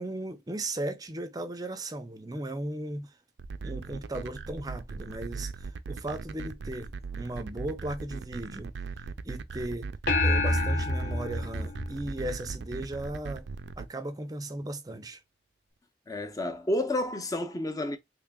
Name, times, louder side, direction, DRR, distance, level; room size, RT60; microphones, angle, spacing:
voice 1, 0.0-3.1 3.6-8.7 9.2-9.9 10.2-13.5 13.8-15.2, right 1 dB, 20° right, 0.5 m, -36 dB
sound 1, 3.4-13.8, right 4 dB, 85° right, 0.4 m, -39 dB
sound 2, 10.1-12.7, left 2 dB, 60° left, 1.0 m, -27 dB
voice 2, 16.1-18.0, left 1 dB, 20° left, 0.6 m, -30 dB
3.5 x 3.3 x 2.3 m
head